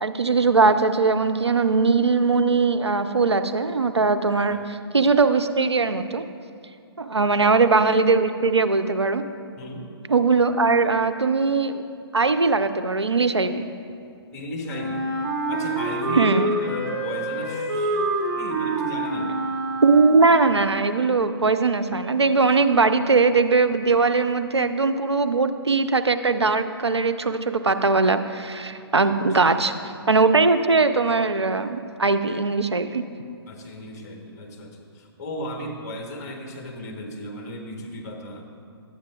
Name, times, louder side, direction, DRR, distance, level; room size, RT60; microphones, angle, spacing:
voice 1, 0.0-6.2 7.0-9.2 10.1-11.8 12.1-13.7 16.1-16.5 19.8-29.7 30.1-33.0, right 4 dB, 90° right, 9 dB, 0.5 m, -20 dB
voice 2, 7.2-7.6 9.6-9.9 14.3-15.1 15.5-19.3 29.3-29.7 33.5-38.5, left 1 dB, 40° left, 1 dB, 1.2 m, -36 dB
Wind instrument woodwind instrument, 14.7-20.5, right 2 dB, 55° right, 1.9 m, -27 dB
12.0 x 8.6 x 2.4 m, 2.3 s
figure-of-eight pair, 130°, 14 cm